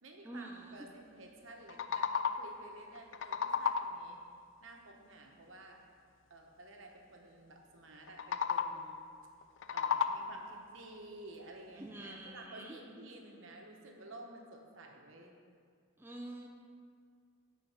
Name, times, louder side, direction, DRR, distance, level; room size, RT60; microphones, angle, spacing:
voice 1, 0.0-4.2 4.6-5.8 6.3-9.0 9.7-15.3, right 2 dB, 60° right, 1 dB, 1.0 m, -52 dB
sound 1, 1.5-2.6 2.9-4.1 8.1-9.0 9.4-10.5, left 6 dB, 60° left, 0.4 m, -34 dB
voice 2, 11.8-12.8 16.0-16.5, right 1 dB, 10° right, 0 dB, 0.5 m, -46 dB
9.4 x 4.4 x 5.7 m, 2.1 s
head